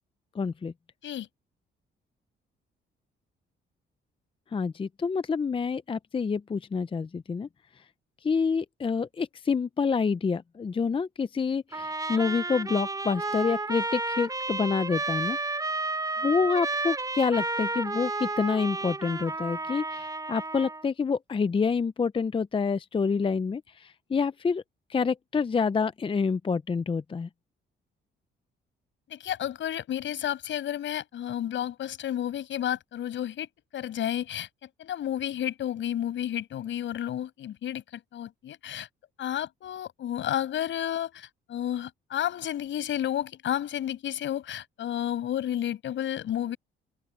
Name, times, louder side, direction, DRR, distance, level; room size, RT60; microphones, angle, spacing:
voice 1, 0.3-0.7 4.5-7.5 8.2-15.4 16.2-24.6 24.9-27.3, left 5 dB, 25° left, 0.6 m, -27 dB
Trumpet, 11.7-20.8, right 2 dB, 20° right, 3.7 m, -32 dB
voice 2, 29.1-34.5 34.8-38.9 39.2-46.6, left 11 dB, 70° left, 6.2 m, -31 dB
open air
cardioid pair, 90°, 20 cm